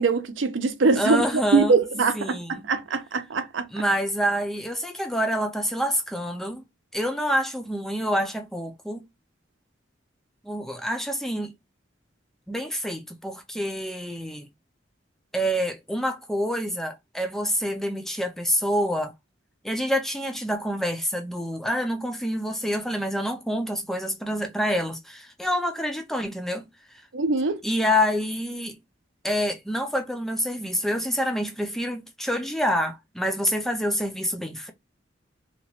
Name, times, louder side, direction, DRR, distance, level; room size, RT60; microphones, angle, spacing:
voice 1, 0.0-3.7 27.1-27.6, right 4 dB, 80° right, 0.6 m, -23 dB
voice 2, 1.0-1.8 2.1-2.6 3.7-6.6 6.9-9.0 10.4-11.5 12.5-14.5 15.3-19.1 19.6-26.7 27.6-28.8 29.2-34.7, equal, ahead, 0.3 m, -27 dB
2.9 x 2.2 x 2.9 m
head